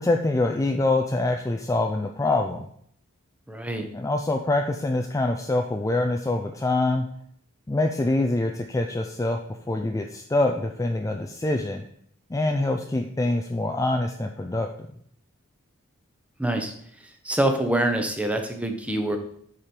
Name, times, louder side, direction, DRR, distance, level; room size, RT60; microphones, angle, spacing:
voice 1, 0.0-2.7 3.9-7.1 7.7-9.4 9.7-11.8 12.3-14.7, left 2 dB, 15° left, 4 dB, 0.4 m, -25 dB
voice 2, 3.5-3.9 16.4-16.7 17.2-19.2, right 1 dB, 5° right, 5 dB, 0.9 m, -25 dB
8.7 x 4.9 x 4.4 m, 0.66 s
head